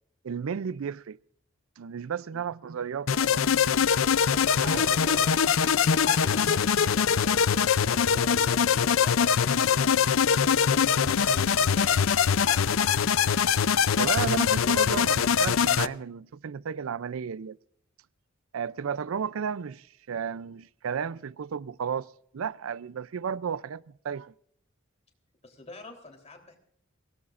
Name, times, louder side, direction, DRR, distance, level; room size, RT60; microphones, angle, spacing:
voice 1, 0.2-1.2 1.8-3.4 4.6-5.3 14.0-17.6 18.5-22.1 22.3-24.3, right 7 dB, 85° right, 0.4 m, -33 dB
sound 1, 3.1-15.9, left 7 dB, 70° left, 0.5 m, -23 dB
voice 2, 4.3-7.6 7.9-9.9 10.3-12.9 25.4-26.6, left 2 dB, 35° left, 3.5 m, -46 dB
23.0 x 17.5 x 2.5 m
head